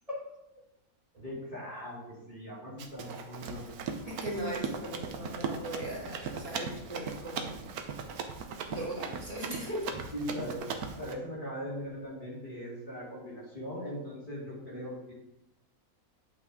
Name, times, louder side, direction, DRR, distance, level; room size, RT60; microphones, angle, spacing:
voice 1, 1.2-3.7 7.5-7.7 10.1-10.6 11.0-15.1, equal, 35° left, -8 dB, 2.7 m, -40 dB
Run, 2.8-11.1, right 5 dB, 85° right, 1.3 m, -39 dB
voice 2, 4.0-7.6 8.7-10.1, right 1 dB, 25° right, -5 dB, 2.2 m, -38 dB
9.0 x 5.8 x 3.6 m, 0.88 s
omnidirectional pair, 1.5 m